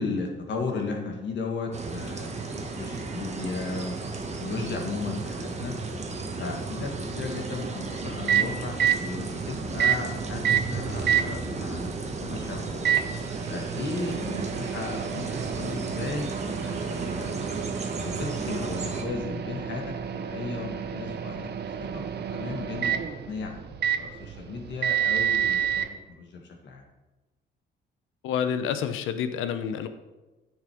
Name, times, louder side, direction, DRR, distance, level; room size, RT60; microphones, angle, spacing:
voice 1, 0.0-4.1 4.4-5.7 6.4-11.9 12.2-12.7 13.5-17.4 18.0-19.8 20.1-21.5 21.8-22.0 22.3-23.0 23.3-26.8, left 4 dB, 65° left, 3 dB, 1.8 m, -35 dB
sound 1, 1.7-19.0, right 3 dB, 35° right, 1.3 m, -34 dB
Microwave oven, 7.9-25.9, right 9 dB, 55° right, 0.8 m, -30 dB
voice 2, 28.2-29.9, left 8 dB, 90° left, 10 dB, 0.8 m, -28 dB
9.3 x 6.5 x 4.9 m, 1.1 s
cardioid pair, 90°, 20 cm